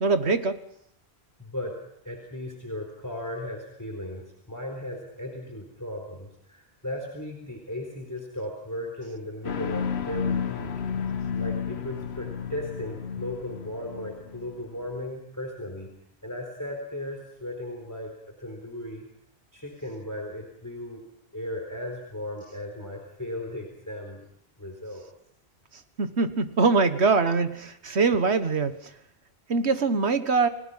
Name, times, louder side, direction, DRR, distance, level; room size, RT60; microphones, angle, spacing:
voice 1, 0.0-0.6 26.0-28.7 29.5-30.5, right 4 dB, 80° right, 10 dB, 1.7 m, -23 dB
voice 2, 1.4-1.8 2.0-10.7 11.3-15.9 16.2-19.1 19.5-21.0 21.3-24.2 24.6-25.0, left 1 dB, 15° left, 2 dB, 4.2 m, -36 dB
sound 1, 9.4-14.9, left 7 dB, 75° left, 1.4 m, -32 dB
29.5 x 19.0 x 5.7 m, 0.73 s
omnidirectional pair, 1.1 m